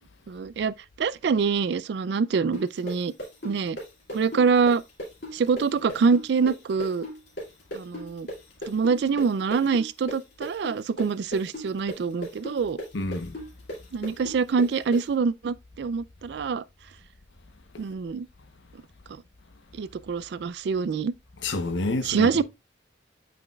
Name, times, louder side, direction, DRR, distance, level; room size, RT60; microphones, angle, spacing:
voice 1, 0.3-3.1 3.4-3.8 4.1-4.8 5.3-7.0 7.7-8.3 8.7-12.8 13.9-16.6 17.8-18.3 19.7-21.1 22.0-22.4, right 5 dB, 60° right, 0.3 m, -25 dB
sound 1, 2.5-10.2 10.4-15.0, equal, 55° left, 2.4 m, -36 dB
voice 2, 12.9-13.4 21.4-22.4, left 2 dB, 70° left, 0.9 m, -29 dB
8.2 x 5.2 x 2.3 m
head